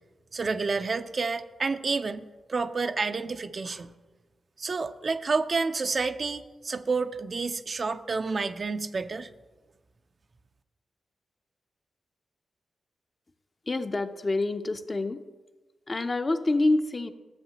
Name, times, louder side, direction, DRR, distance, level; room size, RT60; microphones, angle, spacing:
voice 1, 0.3-3.9 4.6-9.3, right 4 dB, 55° right, 10 dB, 0.4 m, -29 dB
voice 2, 13.7-15.2 15.9-17.1, left 2 dB, 40° left, 8 dB, 0.6 m, -27 dB
12.0 x 7.3 x 2.9 m, 1.2 s
supercardioid pair, 45°, 0 cm